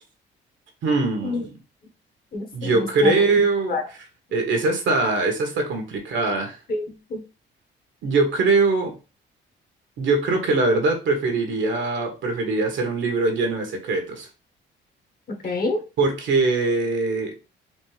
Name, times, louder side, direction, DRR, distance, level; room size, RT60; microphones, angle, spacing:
voice 1, 0.8-1.5 2.5-3.8 4.3-6.6 8.0-8.9 10.0-14.3 16.0-17.3, right 3 dB, 70° right, 4 dB, 1.2 m, -22 dB
voice 2, 2.3-3.2 3.7-3.8 6.7-7.2 15.3-15.8, left 3 dB, 50° left, 4 dB, 1.2 m, -27 dB
4.3 x 2.6 x 3.2 m, 0.31 s
cardioid pair, 90°, 20 cm